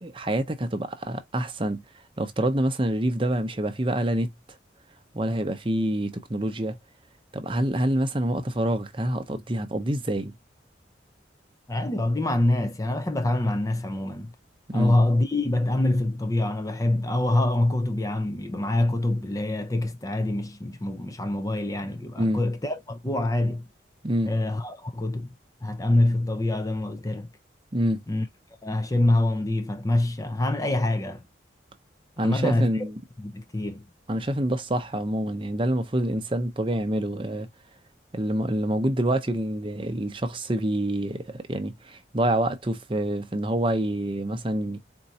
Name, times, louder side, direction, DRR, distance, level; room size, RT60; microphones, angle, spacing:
voice 1, 0.0-1.8 2.2-4.3 5.1-6.8 7.3-10.3 14.7-15.0 22.2-22.4 24.0-24.3 27.7-28.0 32.2-33.0 34.1-37.5 38.1-44.8, right 1 dB, 25° right, 0.7 m, -26 dB
voice 2, 11.7-14.3 14.7-23.7 24.2-25.3 25.6-27.3 28.1-28.3 28.6-31.2 32.2-32.8 33.2-33.8, left 1 dB, 20° left, 0.5 m, -25 dB
4.5 x 2.6 x 4.1 m
head